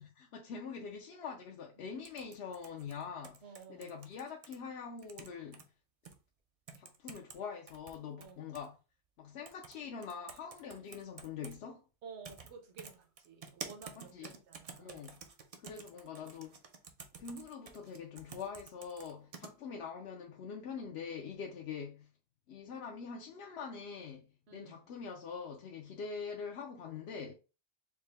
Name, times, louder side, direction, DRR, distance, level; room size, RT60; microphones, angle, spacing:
voice 1, 0.0-3.4 3.7-5.6 6.8-8.7 9.2-11.8 13.9-14.3 14.8-15.2 15.6-16.6 17.2-22.1 22.5-27.3, left 6 dB, 70° left, 0.8 m, -44 dB
Computer keyboard typing close up, 2.0-4.6 5.0-5.6 6.1-6.2 6.7-7.4 7.7-8.7 9.5-9.8 10.0-11.6 12.2-12.5 12.8-19.5, right 5 dB, 55° right, 0.4 m, -50 dB
voice 2, 3.4-4.0 8.2-8.6 12.0-15.1 24.5-24.9, right 6 dB, 70° right, 1.2 m, -53 dB
4.6 x 2.1 x 3.3 m
omnidirectional pair, 1.2 m